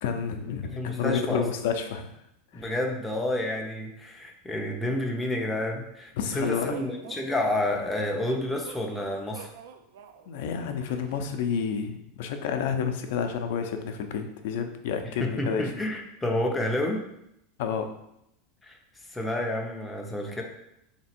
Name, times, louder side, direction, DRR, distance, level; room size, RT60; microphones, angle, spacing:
voice 1, 0.0-2.1 2.5-2.7 6.2-6.8 10.3-15.7 17.6-17.9, left 6 dB, 65° left, 6 dB, 0.5 m, -30 dB
voice 2, 0.8-1.4 2.5-6.1 6.3-9.5 15.2-17.0 18.6-18.8 19.1-20.4, left 1 dB, 5° left, 0 dB, 0.5 m, -29 dB
sound 1, 6.4-11.2, right 7 dB, 75° right, 0.4 m, -46 dB
3.4 x 2.9 x 4.3 m, 0.80 s
supercardioid pair, 160°, 0 cm